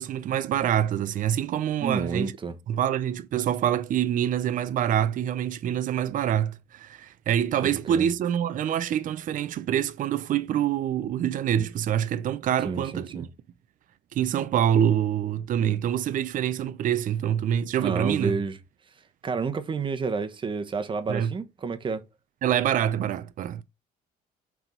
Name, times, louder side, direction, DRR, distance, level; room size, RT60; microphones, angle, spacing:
voice 1, 0.0-2.3 2.7-13.3 14.1-18.3 21.1-21.3 22.4-23.6, right 10 dB, 50° right, 0.6 m, -26 dB
voice 2, 1.8-2.6 7.6-8.1 12.6-13.3 17.8-18.6 19.2-22.0, right 4 dB, 30° right, 1.0 m, -30 dB
6.1 x 3.6 x 5.1 m
cardioid pair, 110°, 17 cm